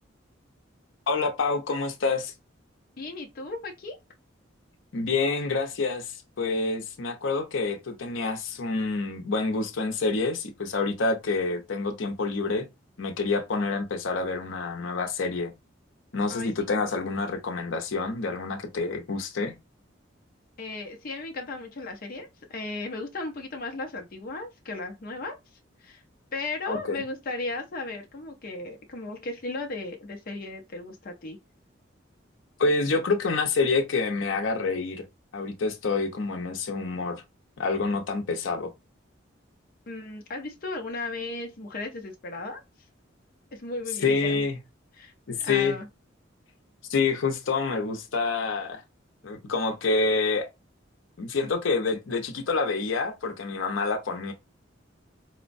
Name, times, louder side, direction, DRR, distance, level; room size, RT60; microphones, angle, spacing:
voice 1, 1.1-2.3 4.9-12.7 13.0-15.5 16.1-19.5 26.7-27.0 32.6-35.0 35.3-37.2 37.6-38.7 44.0-44.6 45.3-45.8 46.9-48.8 49.2-50.5 51.2-54.3, left 4 dB, 85° left, 0.6 m, -27 dB
voice 2, 3.0-4.0 16.3-16.7 20.6-25.3 25.8-26.0 26.3-31.4 39.9-42.6 43.5-44.4 45.0-45.9, left 3 dB, 50° left, 0.5 m, -36 dB
4.3 x 2.1 x 2.5 m
head